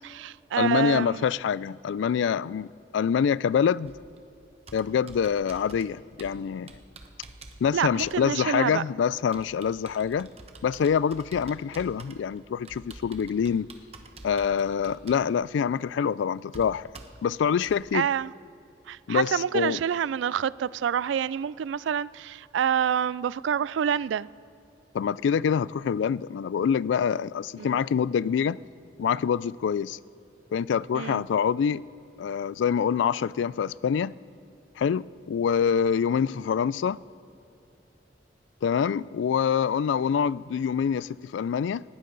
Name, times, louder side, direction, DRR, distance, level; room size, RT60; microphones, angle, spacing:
voice 1, 0.0-1.2 7.7-8.8 17.9-18.3 18.9-24.3 27.6-27.8 30.9-31.2, right 8 dB, 90° right, 0.3 m, -27 dB
voice 2, 0.6-3.9 4.7-6.7 7.6-10.3 10.6-13.7 14.2-16.9 17.2-18.1 19.1-19.8 24.9-28.6 29.0-30.0 30.5-31.8 32.2-34.1 34.8-37.0 38.6-41.8, left 7 dB, 90° left, 0.3 m, -25 dB
Computer keyboard, 3.8-17.8, right 2 dB, 35° right, 0.9 m, -49 dB
19.5 x 15.0 x 3.9 m
head